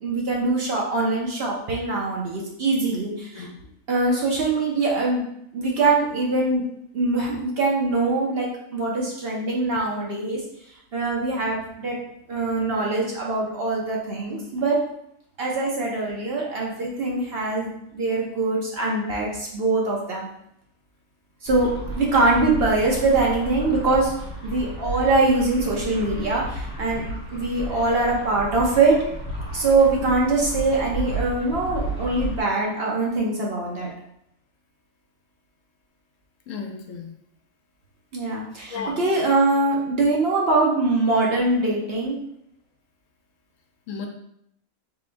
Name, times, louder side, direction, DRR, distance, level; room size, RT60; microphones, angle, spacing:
voice 1, 0.0-3.5 3.9-5.2 5.5-6.6 6.9-10.4 10.9-12.0 12.3-14.8 15.4-20.3 21.4-21.7 21.9-24.1 24.4-27.0 27.3-29.0 29.5-33.9 38.1-42.2, right 3 dB, 55° right, -3 dB, 0.8 m, -23 dB
sound 1, 21.5-32.4, right 1 dB, 25° left, 1.3 m, -33 dB
voice 2, 36.5-37.1 38.7-38.9 43.9-44.1, left 5 dB, 70° left, 3 dB, 0.9 m, -33 dB
3.7 x 3.3 x 2.5 m, 0.74 s
omnidirectional pair, 1.4 m